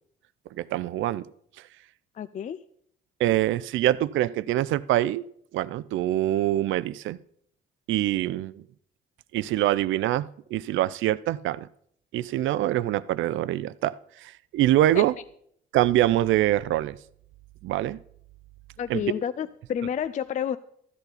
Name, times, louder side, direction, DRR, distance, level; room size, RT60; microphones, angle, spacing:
voice 1, 0.6-1.3 3.2-5.2 5.5-7.2 7.9-8.6 9.3-11.7 12.1-15.1 15.7-17.0 17.6-18.0 18.9-19.0, right 14 dB, 75° right, 18 dB, 0.4 m, -24 dB
voice 2, 2.1-2.6 14.9-15.0 18.8-20.6, left 8 dB, 40° left, 14 dB, 0.4 m, -30 dB
13.5 x 8.1 x 4.0 m, 0.68 s
cardioid pair, 90°, 20 cm